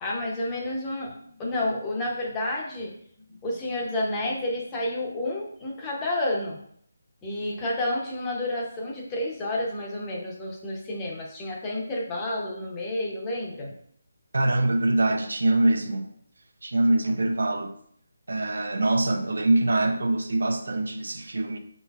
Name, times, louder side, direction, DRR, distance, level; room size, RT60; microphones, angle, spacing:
voice 1, 0.0-2.9 3.4-6.6 7.2-13.7, left 1 dB, 10° left, 0.6 m, -30 dB
voice 2, 14.3-16.1 16.6-17.7 18.3-21.6, right 2 dB, 80° right, 0.6 m, -24 dB
5.8 x 4.0 x 2.3 m
hypercardioid pair, 175°, 0 cm